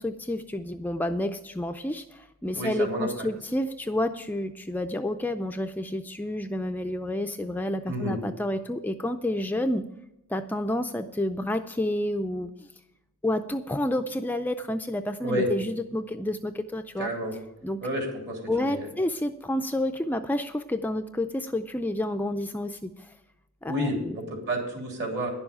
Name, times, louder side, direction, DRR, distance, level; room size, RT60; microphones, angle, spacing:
voice 1, 0.0-9.9 10.3-12.5 13.2-17.1 17.6-17.8 18.5-23.1 23.6-24.2, left 1 dB, 10° left, 6 dB, 0.4 m, -29 dB
voice 2, 2.5-3.3 7.9-8.2 15.2-15.5 17.0-17.3 17.8-18.9 23.7-25.3, equal, 55° right, 1 dB, 3.3 m, -30 dB
10.5 x 7.1 x 8.7 m, 0.86 s
head